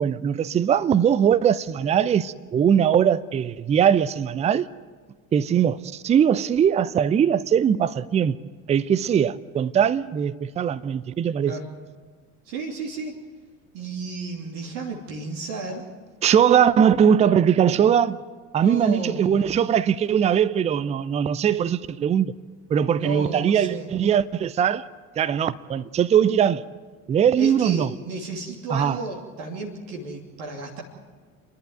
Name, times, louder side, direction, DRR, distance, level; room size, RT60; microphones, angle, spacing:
voice 1, 0.0-4.7 5.3-8.4 8.7-11.6 16.2-18.2 18.5-22.3 22.7-24.9 25.2-26.6 27.1-27.9 28.7-29.0, right 8 dB, 15° right, 0.5 m, -20 dB
voice 2, 12.5-13.1 13.7-15.8 18.6-19.4 23.0-23.9 27.4-30.8, right 3 dB, 55° right, 3.0 m, -33 dB
29.5 x 11.5 x 9.2 m
figure-of-eight pair, 70°, 41 cm